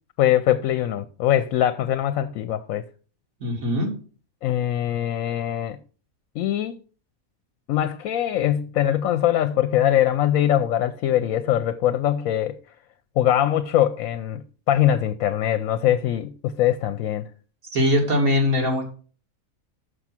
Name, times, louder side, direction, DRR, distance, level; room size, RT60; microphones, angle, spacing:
voice 1, 0.2-2.8 4.4-5.8 6.4-6.8 7.7-12.6 13.2-17.3, left 11 dB, 75° left, 1.0 m, -22 dB
voice 2, 3.4-3.9 17.7-18.8, left 1 dB, 85° right, 2.9 m, -21 dB
6.5 x 6.0 x 5.8 m
omnidirectional pair, 1.5 m